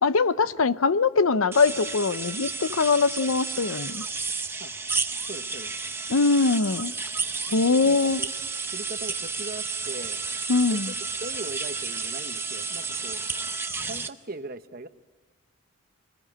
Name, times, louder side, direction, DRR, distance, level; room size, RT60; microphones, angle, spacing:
voice 1, 0.0-4.0 6.1-6.9 7.5-8.2 10.5-10.9, left 4 dB, 75° left, 15 dB, 0.7 m, -22 dB
sound 1, 1.5-14.1, right 4 dB, 10° right, 0.7 m, -32 dB
voice 2, 5.3-5.7 7.5-8.3 8.7-10.2 10.7-10.8 11.2-13.2 13.9-14.9, right 2 dB, 40° right, 9 dB, 1.0 m, -39 dB
24.5 x 20.0 x 8.7 m, 1.3 s
head